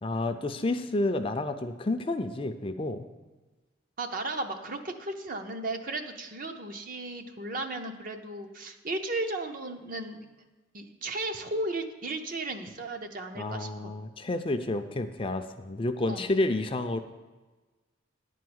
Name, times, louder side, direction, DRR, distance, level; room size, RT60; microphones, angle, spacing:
voice 1, 0.0-3.1 13.4-17.0, left 2 dB, 25° left, 7 dB, 0.4 m, -30 dB
voice 2, 4.0-10.3 10.7-13.9 16.0-16.3, right 2 dB, 45° right, 6 dB, 0.7 m, -35 dB
10.5 x 4.6 x 7.9 m, 1.2 s
head